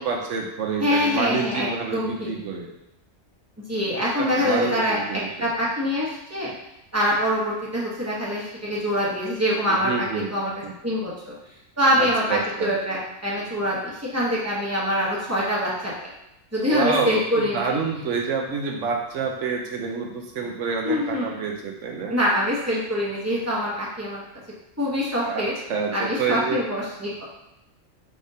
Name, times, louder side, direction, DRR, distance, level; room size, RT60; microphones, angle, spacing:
voice 1, 0.0-2.7 4.2-5.5 9.7-10.3 10.6-10.7 11.9-12.7 16.6-22.2 25.2-26.6, right 5 dB, 70° right, 1 dB, 1.0 m, -28 dB
voice 2, 0.8-2.3 3.7-6.5 6.9-10.5 10.8-11.3 11.8-16.1 16.5-17.8 20.8-21.4 22.1-24.2 24.8-25.5 25.9-27.2, equal, 15° right, -6 dB, 0.9 m, -24 dB
4.9 x 3.5 x 2.7 m, 0.90 s
omnidirectional pair, 1.3 m